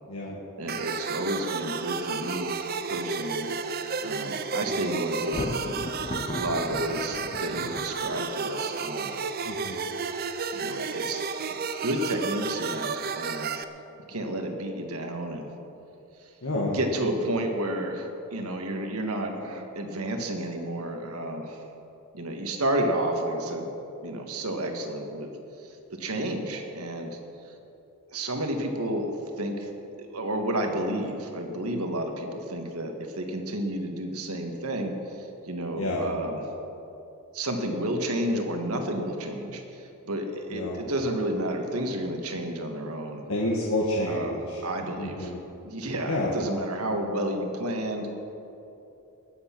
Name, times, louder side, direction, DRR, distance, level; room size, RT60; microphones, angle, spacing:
voice 1, 0.6-2.6 2.9-3.5 4.0-5.7 6.3-9.1 10.5-11.3 11.8-13.5 14.1-15.5 16.7-21.6 22.1-23.7 24.0-25.3 26.0-27.2 28.1-29.1 29.4-29.7 30.1-34.9 35.2-36.4 37.3-39.6 40.0-43.2 44.1-45.3 45.6-48.1, right 1 dB, 85° right, 4 dB, 1.7 m, -31 dB
sound 1, 0.7-13.6, right 5 dB, 45° right, 0.6 m, -32 dB
Thunder, 5.2-8.5, left 2 dB, 30° left, 0.6 m, -36 dB
voice 2, 9.4-9.8 16.4-16.8 35.7-36.0 40.5-40.8 43.3-44.6 45.0-45.4 46.1-46.3, left 1 dB, 70° left, -3 dB, 1.6 m, -29 dB
20.0 x 8.1 x 6.0 m, 2.9 s
head